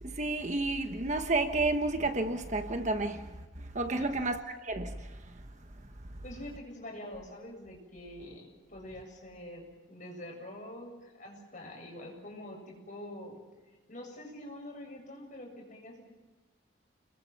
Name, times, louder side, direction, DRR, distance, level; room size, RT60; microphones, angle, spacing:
voice 1, 0.0-5.5, right 2 dB, 35° right, 1.3 m, -31 dB
voice 2, 6.2-13.4 13.9-16.0, left 1 dB, 40° left, 7.7 m, -45 dB
30.0 x 22.0 x 6.0 m
head